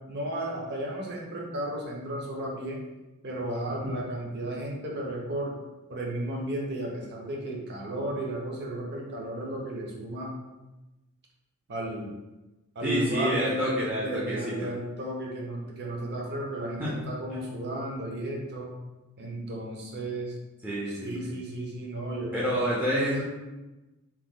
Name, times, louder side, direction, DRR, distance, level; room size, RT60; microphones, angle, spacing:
voice 1, 0.1-2.8 3.2-5.6 5.9-10.4 11.7-12.1 12.7-18.7 19.2-20.4 20.9-22.6, right 1 dB, 50° right, -1 dB, 0.6 m, -34 dB
voice 2, 12.8-14.7 16.8-17.0 20.6-21.4 22.3-23.2, equal, 5° right, -7 dB, 0.4 m, -28 dB
2.9 x 2.1 x 3.6 m, 1.1 s
head